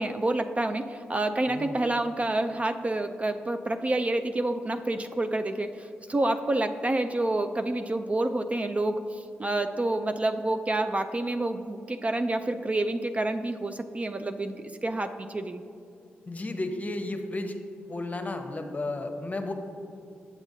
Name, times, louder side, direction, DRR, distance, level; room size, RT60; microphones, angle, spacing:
voice 1, 0.0-15.6, right 2 dB, 30° right, 7 dB, 0.3 m, -28 dB
voice 2, 16.3-17.5 17.9-19.5, left 2 dB, 35° left, 6 dB, 0.7 m, -33 dB
7.2 x 7.0 x 2.7 m, 2.6 s
supercardioid pair, 45°, 5 cm